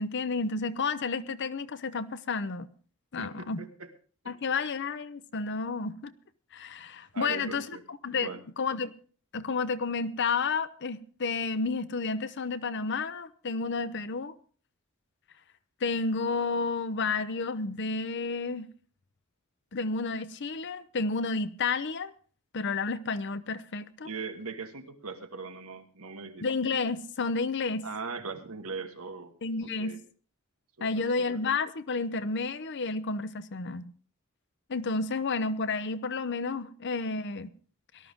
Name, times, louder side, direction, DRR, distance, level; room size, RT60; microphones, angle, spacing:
voice 1, 0.0-2.7 3.1-3.6 4.3-6.1 6.5-8.3 8.6-8.9 9.3-14.3 15.8-18.7 19.7-22.1 22.5-24.1 26.4-27.8 29.4-29.9 30.8-33.9 34.7-37.5, left 4 dB, 55° left, 0.7 m, -31 dB
voice 2, 3.2-3.9 7.1-7.8 8.1-8.4 24.0-26.4 27.8-29.3 29.8-30.0 30.8-31.4, right 4 dB, 85° right, 1.5 m, -40 dB
18.0 x 12.0 x 3.6 m
head